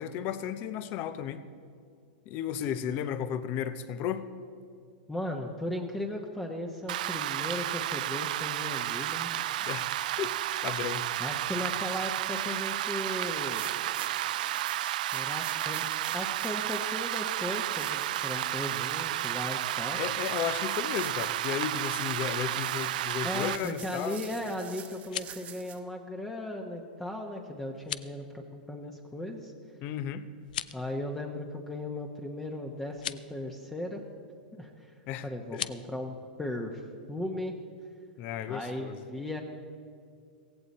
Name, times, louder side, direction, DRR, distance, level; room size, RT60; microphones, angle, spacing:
voice 1, 0.0-1.4 2.3-4.2 9.6-9.9 10.2-10.3 10.6-11.1 20.0-24.2 29.8-30.2 35.1-35.3 35.5-35.7 38.2-39.0, left 9 dB, 40° left, 13 dB, 0.8 m, -34 dB
voice 2, 5.1-9.5 11.2-13.6 15.1-15.8 16.1-20.0 23.2-29.5 30.7-34.0 34.5-34.9 35.2-36.8 37.1-37.6 38.5-39.4, left 1 dB, 10° left, 2 dB, 1.0 m, -37 dB
Rain, 6.9-23.6, right 14 dB, 65° right, 0.3 m, -32 dB
sound 1, 13.5-25.8, right 10 dB, 30° right, 1.2 m, -47 dB
sound 2, 24.9-25.5 27.8-28.2 30.4-30.9 32.9-33.2 35.5-35.8, left 11 dB, 75° left, 0.4 m, -37 dB
16.0 x 16.0 x 4.2 m, 2.3 s
hypercardioid pair, 125°, 5 cm